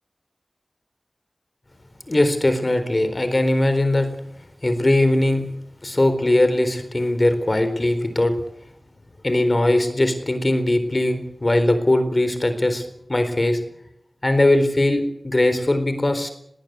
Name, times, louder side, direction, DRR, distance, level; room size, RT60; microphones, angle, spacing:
voice 1, 2.1-4.1 4.6-5.4 5.8-8.3 9.2-12.8 13.1-13.6 14.2-16.3, left 1 dB, 40° left, 9 dB, 4.1 m, -20 dB
20.5 x 17.5 x 8.1 m, 0.76 s
wide cardioid pair, 70°, 0 cm